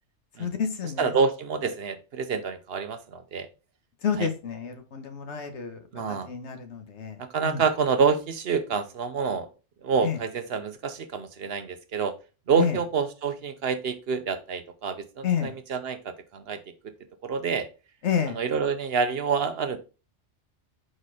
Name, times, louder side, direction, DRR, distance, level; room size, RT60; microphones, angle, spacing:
voice 1, 0.4-1.1 4.0-5.8 6.1-7.2 7.4-7.6 10.0-10.2 12.6-12.8 15.2-15.5 18.0-18.4, left 7 dB, 70° left, 7 dB, 1.3 m, -29 dB
voice 2, 1.0-3.5 4.2-4.3 5.9-6.3 7.2-9.5 9.8-12.1 12.5-16.6 17.2-17.7 18.4-19.8, right 5 dB, 60° right, 9 dB, 0.9 m, -27 dB
5.1 x 4.2 x 4.8 m, 0.33 s
omnidirectional pair, 1.2 m